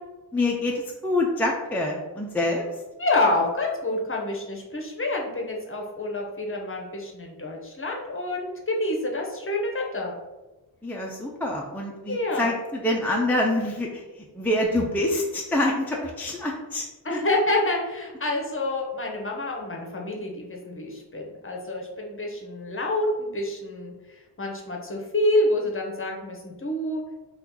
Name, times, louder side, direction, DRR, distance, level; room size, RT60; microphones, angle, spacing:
voice 1, 0.3-2.8 10.8-17.2, left 1 dB, 5° left, -2 dB, 0.4 m, -26 dB
voice 2, 3.0-10.1 12.1-12.5 17.0-27.0, left 2 dB, 30° left, 0 dB, 0.7 m, -27 dB
2.8 x 2.4 x 3.6 m, 1.1 s
cardioid pair, 65°, 43 cm